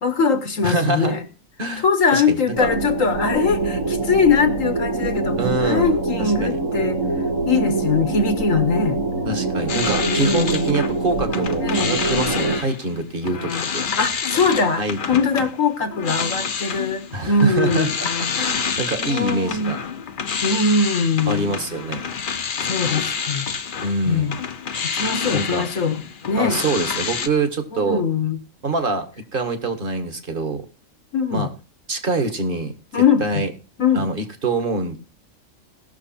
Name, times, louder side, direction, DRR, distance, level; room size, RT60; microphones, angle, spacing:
voice 1, 0.0-1.2 1.8-7.0 7.5-9.0 10.1-10.8 11.6-12.0 14.0-18.0 19.0-19.8 20.4-21.6 22.6-23.5 24.1-24.4 24.9-26.0 26.3-26.6 27.7-28.4 31.1-31.5 32.9-33.4 33.8-34.1, left 5 dB, 80° left, 9 dB, 1.8 m, -21 dB
voice 2, 0.6-1.2 1.6-1.8 2.1-2.7 5.4-6.0 6.4-6.6 9.3-13.9 14.8-15.2 17.1-18.1 18.3-19.8 21.3-22.0 23.8-24.3 25.3-25.7 26.4-28.0 28.6-30.7 31.3-31.5 31.9-32.8 33.2-33.5 34.0-35.0, right 3 dB, 40° right, 8 dB, 1.8 m, -25 dB
sound 1, 2.5-12.6, right 3 dB, 85° right, 2.8 m, -24 dB
sound 2, 9.7-11.0 11.3-27.3, left 6 dB, 45° left, 0.9 m, -28 dB
17.5 x 6.6 x 4.3 m, 0.32 s
omnidirectional pair, 1.4 m